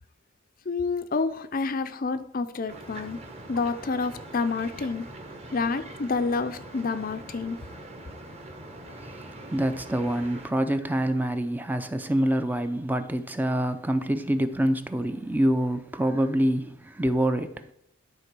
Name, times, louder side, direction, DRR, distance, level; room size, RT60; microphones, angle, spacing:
voice 1, 0.7-3.2 3.5-5.1 5.5-7.6, left 4 dB, 45° left, 0.5 m, -28 dB
sound 1, 2.7-10.5, right 1 dB, 30° right, 1.2 m, -43 dB
voice 2, 9.5-17.7, right 1 dB, 10° right, 0.5 m, -26 dB
12.0 x 4.0 x 6.1 m
head